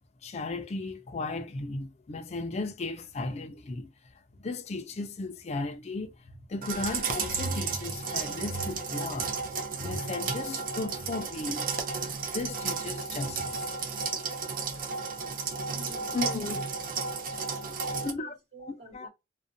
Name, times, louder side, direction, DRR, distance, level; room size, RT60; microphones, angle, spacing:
voice 1, 0.2-3.9 4.4-6.2 6.5-9.3 9.8-11.7 12.3-13.7 16.1-16.6 18.0-18.3 18.6-19.1, left 2 dB, 40° left, 0.4 m, -35 dB
sound 1, 6.6-18.1, right 5 dB, 50° right, 0.5 m, -33 dB
voice 2, 15.7-16.2 17.6-19.1, right 2 dB, 80° right, 1.3 m, -50 dB
2.4 x 2.1 x 2.6 m
head